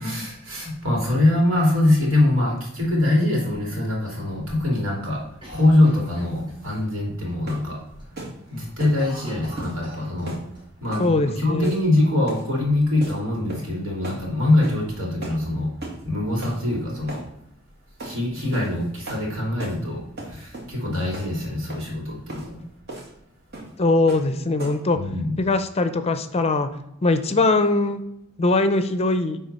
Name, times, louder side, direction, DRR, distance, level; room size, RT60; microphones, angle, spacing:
voice 1, 0.0-5.2 5.5-7.8 8.5-10.4 10.8-15.7 16.0-17.2 18.0-22.6 24.9-25.4, left 1 dB, 85° right, -3 dB, 2.7 m, -23 dB
Cough, 5.4-6.9 7.3-7.4 7.7-8.1 8.4-10.7 10.9-11.0 11.8-12.6, right 1 dB, 25° right, 2.9 m, -43 dB
sound 1, 7.5-7.7 8.2-8.4 8.8-9.0 9.6-9.8 10.3-10.5 10.9-11.1 11.6-11.9 12.3-12.5 13.0-13.2 13.5-13.8 14.0-14.2 14.6-14.8 15.2-15.4 15.8-16.0 16.4-16.6 17.1-17.3 18.0-18.2 18.5-18.7 19.1-19.3 19.6-19.8 20.2-20.7 21.1-21.3 21.7-21.9 22.3-22.5 22.9-23.1 23.5-23.7 24.1-24.3 24.6-24.9, right 2 dB, 55° right, 2.2 m, -36 dB
voice 2, 11.0-11.7 23.8-25.0 25.4-26.7 27.0-28.0 28.4-29.4, left 2 dB, 30° left, 9 dB, 0.5 m, -21 dB
10.5 x 3.7 x 4.1 m, 0.80 s
head